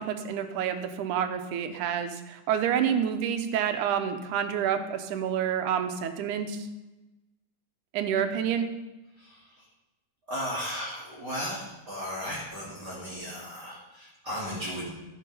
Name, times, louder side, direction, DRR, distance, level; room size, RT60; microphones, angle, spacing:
voice 1, 0.0-6.7 7.9-8.7, right 8 dB, 80° right, 7 dB, 2.3 m, -28 dB
voice 2, 10.3-14.9, equal, 35° right, -8 dB, 2.7 m, -35 dB
15.0 x 6.7 x 5.4 m, 1.0 s
omnidirectional pair, 3.5 m